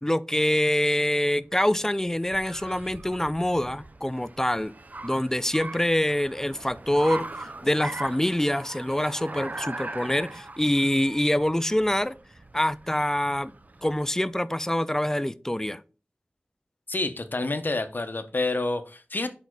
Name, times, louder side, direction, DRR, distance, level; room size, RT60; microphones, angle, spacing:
voice 1, 0.0-4.7 5.0-12.2 12.5-13.5 13.8-15.8, left 1 dB, 10° left, 0.4 m, -25 dB
Car, 1.4-14.2, right 2 dB, 40° right, 0.5 m, -41 dB
voice 2, 16.9-19.3, left 2 dB, 55° left, 0.8 m, -28 dB
5.4 x 4.2 x 4.6 m
wide cardioid pair, 45°, 4 cm